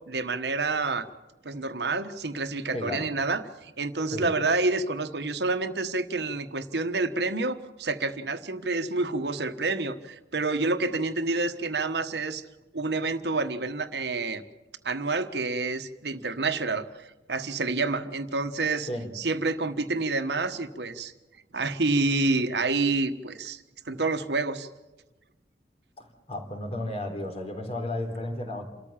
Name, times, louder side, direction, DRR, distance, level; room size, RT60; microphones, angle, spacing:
voice 1, 0.1-1.1 1.4-12.4 12.7-14.4 14.8-18.9 19.1-21.1 21.5-24.7, right 3 dB, 70° right, 9 dB, 1.3 m, -28 dB
voice 2, 2.7-3.1 4.1-4.3 18.9-19.1 26.0-28.7, left 1 dB, 35° left, 3 dB, 3.6 m, -33 dB
28.0 x 13.5 x 7.4 m, 1.1 s
head